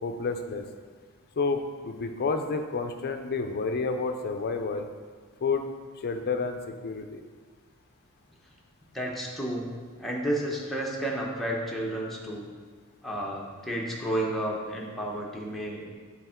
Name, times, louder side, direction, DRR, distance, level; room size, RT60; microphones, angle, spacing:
voice 1, 0.0-0.6 1.4-1.6 1.8-4.9 5.4-5.6 6.0-7.2, left 4 dB, 45° left, 6 dB, 0.4 m, -29 dB
voice 2, 8.9-12.5 13.0-15.8, right 1 dB, ahead, -3 dB, 0.9 m, -31 dB
6.9 x 3.5 x 4.4 m, 1.5 s
head